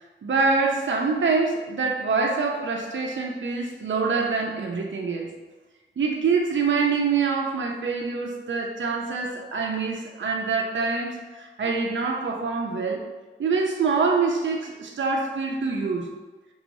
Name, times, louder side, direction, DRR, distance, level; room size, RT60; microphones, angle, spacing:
voice 1, 0.2-5.3 6.0-13.0 13.4-16.1, right 4 dB, 70° right, 0 dB, 0.6 m, -25 dB
5.4 x 3.0 x 2.6 m, 1.3 s
cardioid pair, 45°, 20 cm